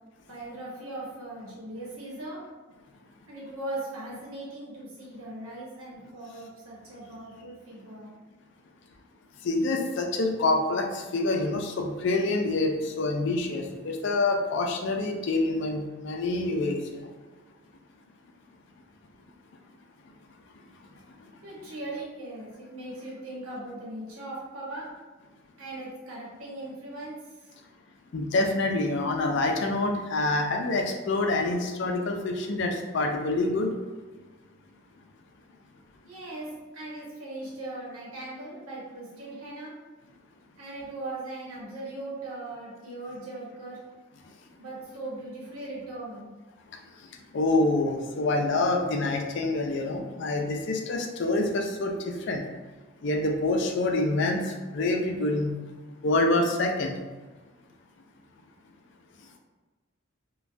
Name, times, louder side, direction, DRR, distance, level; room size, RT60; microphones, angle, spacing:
voice 1, 0.3-2.4 3.3-8.1 21.4-24.9 25.6-27.6 36.0-39.7 40.6-43.8 44.6-46.3, right 2 dB, 90° right, -5 dB, 1.0 m, -39 dB
voice 2, 9.4-17.1 28.1-33.7 47.3-52.4 53.0-55.5 56.0-56.9, left 2 dB, 55° left, 3 dB, 0.4 m, -26 dB
3.2 x 2.2 x 2.5 m, 1.3 s
head